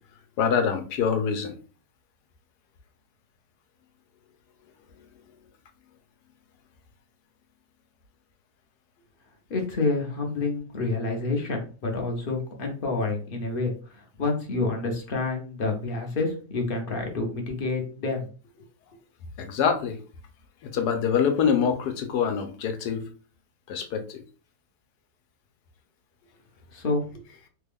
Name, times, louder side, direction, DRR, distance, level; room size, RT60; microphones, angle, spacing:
voice 1, 0.4-1.5 19.4-20.0 20.6-23.1 23.7-24.2, left 7 dB, 75° left, 6 dB, 1.2 m, -25 dB
voice 2, 9.5-18.3 26.7-27.1, left 3 dB, 45° left, 2 dB, 0.7 m, -28 dB
3.3 x 2.3 x 3.4 m, 0.37 s
omnidirectional pair, 1.8 m